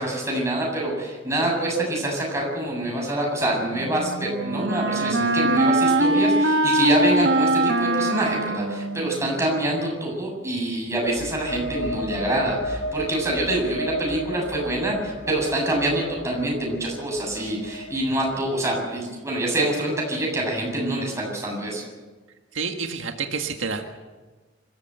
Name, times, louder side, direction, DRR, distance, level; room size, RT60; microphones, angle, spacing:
voice 1, 0.0-21.8, right 1 dB, 15° right, -1 dB, 7.8 m, -26 dB
Wind instrument woodwind instrument, 3.7-9.6, right 1 dB, 65° right, 1.4 m, -22 dB
sound 1, 11.1-18.6, equal, 65° left, 6.6 m, -34 dB
voice 2, 22.5-23.9, right 5 dB, 90° right, 4 dB, 1.8 m, -29 dB
25.5 x 15.0 x 7.9 m, 1.3 s
head